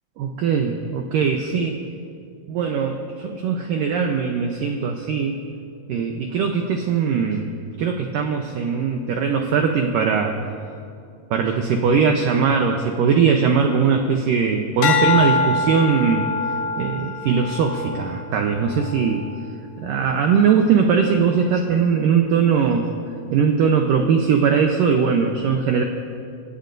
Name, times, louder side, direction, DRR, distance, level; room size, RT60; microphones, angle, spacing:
voice 1, 0.2-1.8 2.5-5.4 5.9-7.5 7.8-10.4 11.3-16.3 16.8-19.3 19.8-22.9 23.3-25.8, right 6 dB, 80° right, 3 dB, 2.0 m, -20 dB
sound 1, 14.8-19.3 19.8-20.2, left 4 dB, 80° left, 3.1 m, -25 dB
27.0 x 17.0 x 2.6 m, 2.4 s
omnidirectional pair, 4.9 m